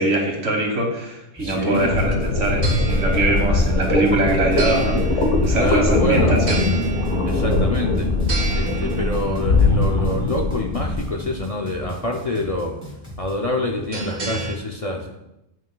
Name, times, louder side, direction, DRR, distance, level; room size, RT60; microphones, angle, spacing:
voice 1, 0.0-6.6, right 2 dB, 85° right, 1 dB, 1.9 m, -23 dB
voice 2, 1.4-2.0 5.5-6.4 7.2-8.1 8.5-12.7 13.2-15.1, left 2 dB, 40° left, 1 dB, 0.5 m, -26 dB
sound 1, 1.4-13.4, right 1 dB, 10° left, 1.7 m, -38 dB
sound 2, 1.7-11.1, left 2 dB, 80° left, 1.4 m, -21 dB
sound 3, 1.9-14.6, right 3 dB, 45° right, 0.8 m, -33 dB
9.3 x 6.0 x 2.3 m, 0.90 s
omnidirectional pair, 1.2 m